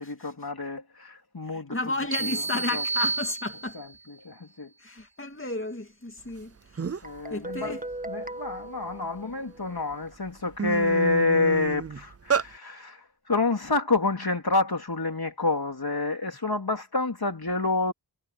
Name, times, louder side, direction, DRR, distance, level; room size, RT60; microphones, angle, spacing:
voice 1, 0.0-1.8 2.2-2.4 2.7-2.8 3.7-4.7 7.0-17.9, left 3 dB, 60° left, 3.7 m, -28 dB
voice 2, 1.5-3.8 4.8-7.0 7.3-7.8 12.3-12.4, left 2 dB, 30° left, 2.7 m, -33 dB
sound 1, 2.1-4.0, right 4 dB, 90° right, 1.8 m, -30 dB
sound 2, 6.4-6.5 6.8-7.2 7.7-9.2 9.8-10.0 10.3-12.5, right 6 dB, 35° right, 0.5 m, -30 dB
Guitar, 7.0-9.8, right 2 dB, 20° right, 1.4 m, -39 dB
wide cardioid pair, 40°, 43 cm